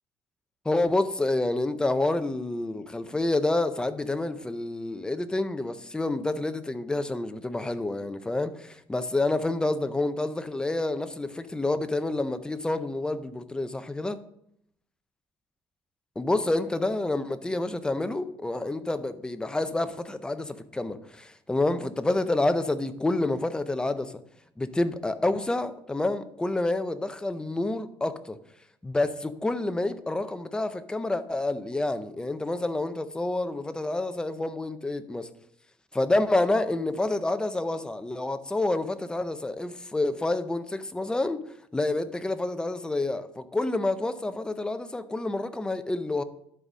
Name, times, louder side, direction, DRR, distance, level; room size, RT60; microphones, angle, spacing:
voice 1, 0.6-14.2 16.2-24.2 24.6-28.4 28.8-35.3 35.9-41.4 41.7-46.2, left 2 dB, 10° left, 0.5 m, -28 dB
11.0 x 4.1 x 6.2 m
cardioid pair, 145°, 9 cm